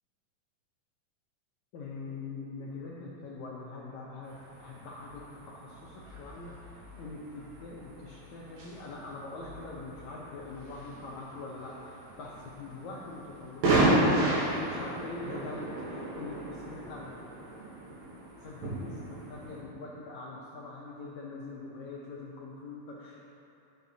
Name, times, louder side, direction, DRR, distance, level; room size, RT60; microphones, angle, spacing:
voice 1, 1.7-17.2 18.4-23.2, left 3 dB, 80° left, -4 dB, 1.6 m, -43 dB
sound 1, 4.2-19.6, right 2 dB, 75° right, 3.2 m, -34 dB
14.5 x 7.1 x 2.8 m, 2.9 s
omnidirectional pair, 4.3 m